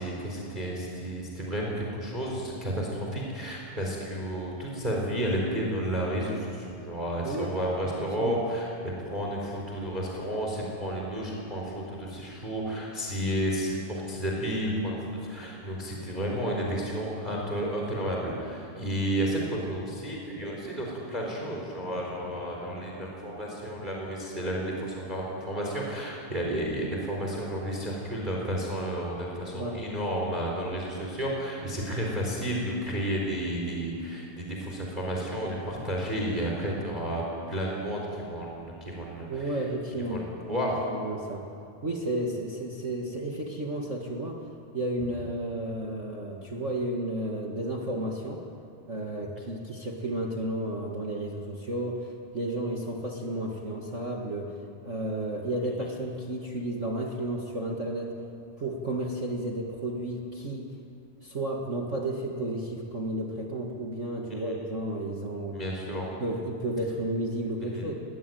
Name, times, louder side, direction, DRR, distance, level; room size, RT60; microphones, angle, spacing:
voice 1, 0.0-39.6 40.1-40.8 64.3-64.5 65.5-66.1 67.6-67.9, equal, 10° right, -1 dB, 4.0 m, -32 dB
voice 2, 7.2-7.6 8.0-8.5 29.5-29.8 39.3-41.5 41.8-44.4 44.7-48.4 48.9-54.5 54.8-58.1 58.6-60.7 61.2-65.6 66.2-67.9, right 1 dB, 55° right, 0 dB, 0.8 m, -32 dB
23.0 x 19.5 x 9.2 m, 2.5 s
omnidirectional pair, 4.5 m